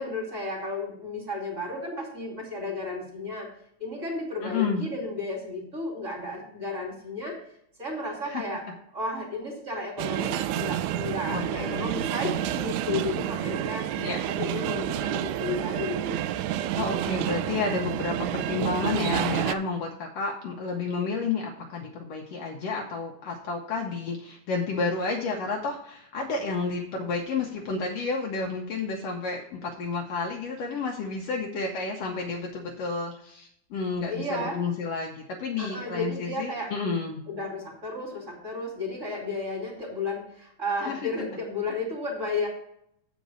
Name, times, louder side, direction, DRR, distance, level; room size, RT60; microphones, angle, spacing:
voice 1, 0.0-3.5 3.8-7.4 7.8-8.6 8.9-13.9 14.3-16.2 34.1-34.6 35.6-36.7 37.3-42.5, left 2 dB, 25° right, -3 dB, 2.9 m, -33 dB
voice 2, 4.4-4.8 8.2-8.4 11.3-12.1 13.9-14.2 16.8-37.2 40.8-41.0, left 4 dB, 65° left, 1 dB, 1.8 m, -31 dB
sound 1, 10.0-19.6, right 12 dB, 90° right, 2.0 m, -29 dB
8.3 x 5.2 x 6.1 m, 0.71 s
omnidirectional pair, 3.4 m